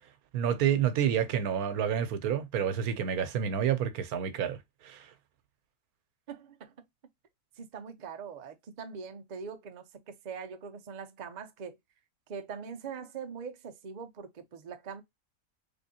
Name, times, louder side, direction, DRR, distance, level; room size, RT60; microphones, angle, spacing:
voice 1, 0.3-4.6 4.8-5.1, right 9 dB, 80° right, 1.1 m, -29 dB
voice 2, 6.3-6.7 7.6-11.8 12.3-15.0, right 6 dB, 55° right, 0.4 m, -42 dB
3.5 x 3.4 x 2.7 m
omnidirectional pair, 1.6 m